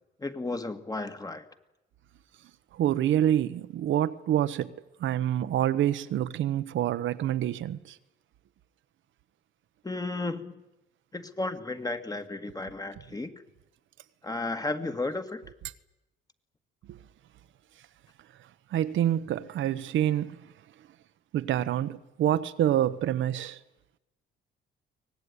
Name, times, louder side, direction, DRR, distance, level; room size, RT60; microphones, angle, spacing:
voice 1, 0.2-1.4 9.8-10.6 11.1-13.3 14.2-15.4, left 2 dB, 20° left, 2.0 m, -33 dB
voice 2, 2.8-4.7 5.0-7.8 16.9-17.0 18.7-20.4 21.3-23.6, right 11 dB, 75° right, 1.1 m, -27 dB
24.0 x 19.0 x 9.9 m
cardioid pair, 90°, 20 cm